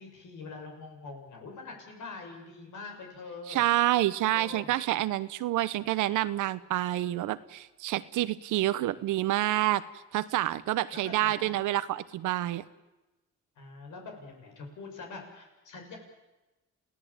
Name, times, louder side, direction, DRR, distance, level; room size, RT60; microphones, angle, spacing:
voice 1, 0.0-3.6 4.3-4.7 10.9-11.5 13.6-16.0, left 4 dB, 75° left, 2 dB, 7.4 m, -44 dB
voice 2, 3.5-9.8 10.1-12.6, right 15 dB, 90° right, 15 dB, 1.1 m, -28 dB
28.5 x 17.5 x 9.0 m, 1.1 s
cardioid pair, 90°, 30 cm